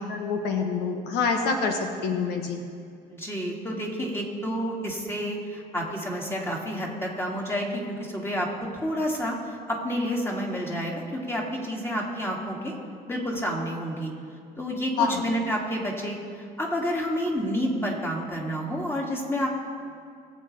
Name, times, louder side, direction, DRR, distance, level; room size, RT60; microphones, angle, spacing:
voice 1, 0.0-2.7 15.0-15.2, left 5 dB, 85° left, 4 dB, 1.2 m, -26 dB
voice 2, 3.1-8.5 8.7-12.7 13.1-14.1 14.6-19.5, equal, 15° left, -2 dB, 2.3 m, -29 dB
20.5 x 8.2 x 3.4 m, 2.3 s
cardioid pair, 110°, 17 cm